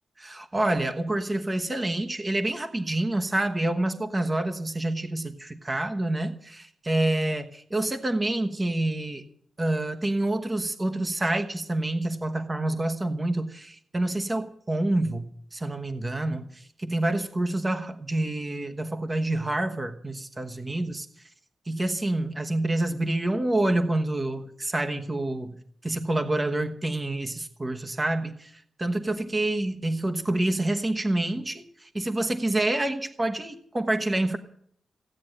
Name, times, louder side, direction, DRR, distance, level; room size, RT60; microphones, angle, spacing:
voice 1, 0.2-9.3 9.6-21.1 21.7-25.6 25.8-34.4, right 1 dB, 20° right, 6 dB, 1.1 m, -27 dB
16.0 x 9.4 x 8.9 m, 0.65 s
wide cardioid pair, 135°, 0 cm